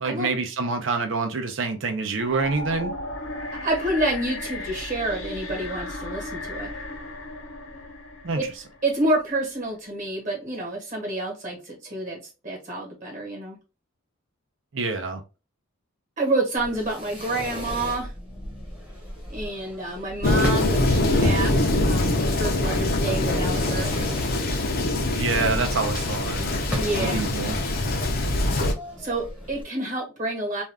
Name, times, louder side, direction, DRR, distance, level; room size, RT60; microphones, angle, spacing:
voice 1, 0.0-2.9 8.2-8.4 14.7-15.2 25.1-26.5 26.9-27.6, right 4 dB, 65° right, 0.6 m, -26 dB
sound 1, 2.2-9.3, left 2 dB, 85° left, 1.0 m, -35 dB
voice 2, 3.6-6.7 8.4-8.5 8.8-13.6 16.2-18.1 19.3-23.9 25.3-25.6 26.7-27.3 29.0-30.6, right 2 dB, 40° right, 1.2 m, -28 dB
Fireworks, 16.6-29.6, equal, 5° right, 0.8 m, -38 dB
Thunder, 20.2-28.7, left 2 dB, 45° left, 0.5 m, -23 dB
2.6 x 2.3 x 3.3 m
head